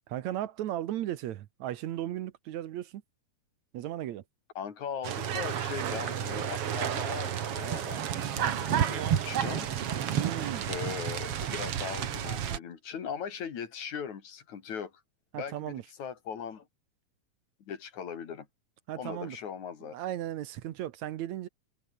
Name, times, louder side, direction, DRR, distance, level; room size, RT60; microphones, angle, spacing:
voice 1, 0.1-3.0 3.7-4.2 10.2-10.7 15.3-15.8 18.9-19.4 19.8-21.5, right 12 dB, 70° right, 2.3 m, -36 dB
voice 2, 4.6-9.7 10.7-14.9 15.4-16.7 17.7-18.5 19.0-20.0, left 7 dB, 70° left, 3.9 m, -39 dB
sound 1, 5.0-12.6, right 9 dB, 55° right, 2.3 m, -31 dB
omnidirectional pair, 3.5 m